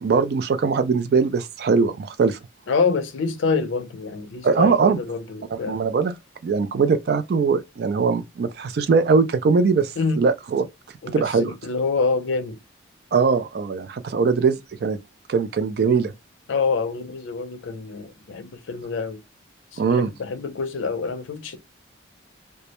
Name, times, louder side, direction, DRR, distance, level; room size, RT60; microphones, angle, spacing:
voice 1, 0.0-2.4 4.4-5.0 5.5-6.1 6.4-9.9 10.2-10.7 11.1-11.5 13.1-15.0 15.3-16.1 19.8-20.1, right 5 dB, 55° right, 0.3 m, -21 dB
voice 2, 2.7-5.8 10.0-10.2 11.0-12.6 16.5-19.2 19.7-21.6, left 4 dB, 90° left, 0.5 m, -26 dB
2.2 x 2.0 x 2.9 m
head